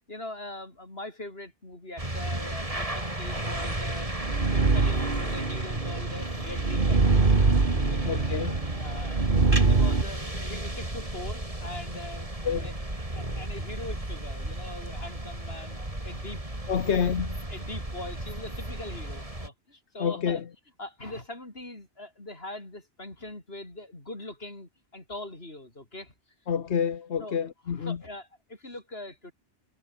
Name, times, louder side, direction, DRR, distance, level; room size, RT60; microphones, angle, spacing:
voice 1, 0.1-4.1 4.5-7.0 7.9-8.1 8.6-9.4 9.7-12.3 12.6-12.7 13.1-17.0 17.5-20.4 20.8-26.1 27.2-29.3, left 1 dB, 65° left, 5.9 m, -42 dB
sound 1, 2.0-19.5, right 1 dB, 30° right, 4.5 m, -34 dB
sound 2, 3.6-10.0, right 3 dB, 50° right, 2.1 m, -24 dB
voice 2, 8.0-8.7 12.4-12.7 16.7-17.4 20.0-20.4 26.5-28.0, left 7 dB, 85° left, 1.4 m, -28 dB
omnidirectional pair, 1.1 m